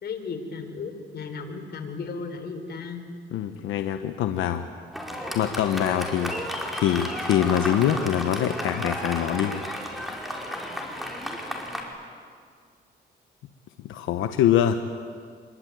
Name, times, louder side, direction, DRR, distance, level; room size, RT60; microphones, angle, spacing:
voice 1, 0.0-3.0, left 4 dB, 55° left, 5 dB, 4.1 m, -35 dB
voice 2, 3.3-4.7 5.3-6.4 6.7-9.6 13.8-14.8, left 10 dB, 90° left, 7 dB, 1.1 m, -24 dB
Fireworks, 4.9-11.8, equal, ahead, 5.3 m, -33 dB
25.5 x 23.5 x 9.4 m, 2.1 s
cardioid pair, 90°, 20 cm